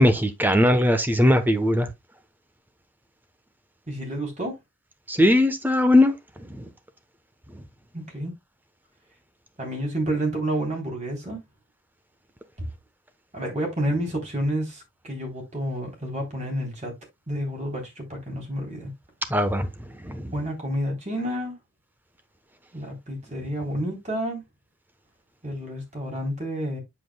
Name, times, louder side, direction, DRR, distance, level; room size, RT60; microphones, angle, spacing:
voice 1, 0.0-1.9 5.1-6.1 6.5-6.6 19.3-19.7 20.0-20.3, left 1 dB, 10° right, 1.0 m, -19 dB
voice 2, 3.9-4.5 7.9-8.3 9.6-11.4 13.3-16.9 17.3-18.9 20.3-21.6 22.7-24.4 25.4-26.8, right 1 dB, 35° right, 3.6 m, -29 dB
8.4 x 7.4 x 2.3 m
head